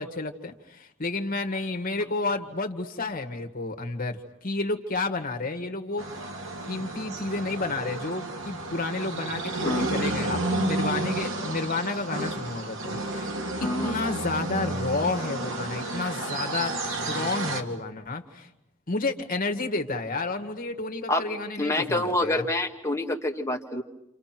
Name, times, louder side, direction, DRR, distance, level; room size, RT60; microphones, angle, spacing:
voice 1, 0.0-6.3 6.7-13.3 13.8-18.5 18.9-22.5, left 3 dB, 40° left, 5 dB, 1.9 m, -31 dB
sound 1, 6.0-17.6, right 2 dB, 65° right, 2.5 m, -31 dB
voice 2, 13.6-14.0 21.1-21.3 21.6-23.8, left 1 dB, 15° left, 1 dB, 2.2 m, -27 dB
30.0 x 27.5 x 6.1 m, 0.83 s
head